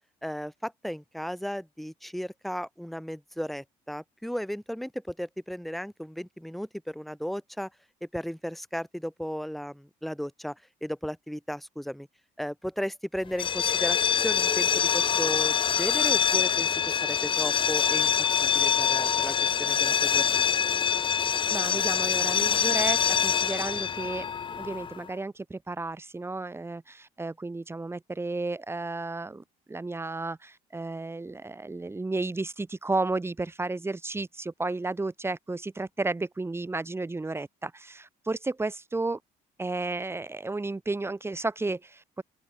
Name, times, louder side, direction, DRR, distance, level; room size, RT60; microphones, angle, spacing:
voice 1, 0.2-7.7 8.0-12.1 12.4-18.1 18.4-20.4, equal, ahead, 5.7 m, -35 dB
sound 1, 13.3-25.0, left 7 dB, 30° left, 0.5 m, -25 dB
voice 2, 21.5-24.3 24.5-39.2 39.6-42.2, right 3 dB, 15° right, 2.0 m, -33 dB
open air
cardioid pair, 110°, 17 cm